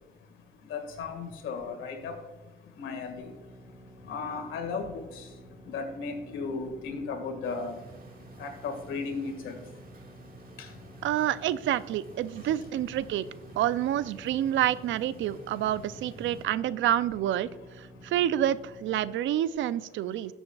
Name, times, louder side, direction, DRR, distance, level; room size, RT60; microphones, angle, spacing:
voice 1, 0.1-11.1 12.3-12.9 13.3-13.4 15.7-16.5 17.5-17.6 17.9-18.1 20.1-20.3, left 4 dB, 80° left, 1.8 m, -38 dB
sound 1, 3.2-19.1, right 1 dB, ahead, 1.2 m, -52 dB
sound 2, 7.4-16.4, right 2 dB, 45° right, 1.8 m, -51 dB
voice 2, 11.0-13.3 13.6-17.5 17.8-20.3, right 12 dB, 70° right, 0.4 m, -28 dB
13.5 x 7.1 x 2.3 m
cardioid pair, 90°, 20 cm